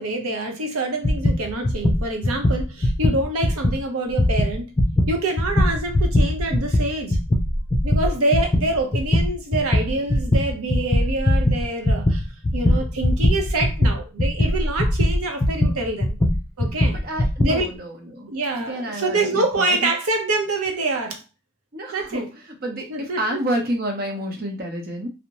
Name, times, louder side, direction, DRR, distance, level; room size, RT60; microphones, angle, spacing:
voice 1, 0.0-4.7 5.1-7.2 7.8-12.2 12.5-16.2 16.6-17.0 17.4-17.7 18.3-21.2 21.9-22.2 22.9-23.4, right 2 dB, 80° right, 0.7 m, -26 dB
sound 1, 1.0-3.8 4.1-17.6, left 1 dB, 20° left, 0.3 m, -20 dB
voice 2, 16.9-18.3 18.6-19.9 21.7-25.1, right 1 dB, 45° right, 0.7 m, -29 dB
2.6 x 2.0 x 2.8 m
head